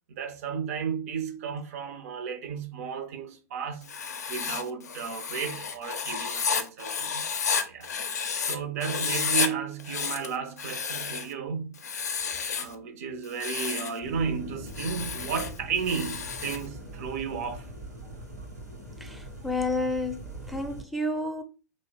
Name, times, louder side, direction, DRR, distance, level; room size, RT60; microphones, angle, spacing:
voice 1, 0.1-3.9 4.3-7.9 8.5-11.7 12.6-17.7, right 6 dB, 60° right, 0.4 m, -33 dB
Writing, 3.8-8.6 8.8-9.5 9.8-11.3 11.8-12.7 13.2-14.0 14.7-16.7, left 6 dB, 75° left, 0.4 m, -31 dB
sound 1, 14.0-20.8, right 1 dB, 85° right, 1.0 m, -42 dB
voice 2, 19.0-21.4, left 2 dB, ahead, 0.4 m, -30 dB
3.0 x 2.0 x 3.4 m
figure-of-eight pair, 90°, 9 cm